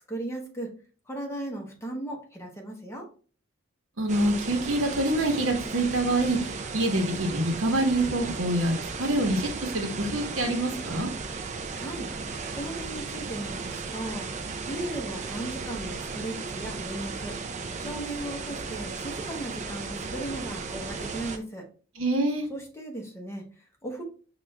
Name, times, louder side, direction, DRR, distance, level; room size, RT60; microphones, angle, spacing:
voice 1, 0.1-0.7 1.1-3.1 11.7-12.1 12.5-14.3 14.7-17.4 17.8-21.6 22.5-24.0, right 1 dB, 15° left, 1 dB, 0.9 m, -36 dB
voice 2, 4.0-11.1 22.0-22.5, right 1 dB, 85° right, 4 dB, 1.0 m, -26 dB
sound 1, 4.1-21.4, right 4 dB, 35° right, 0.4 m, -35 dB
5.7 x 2.4 x 3.2 m, 0.39 s
head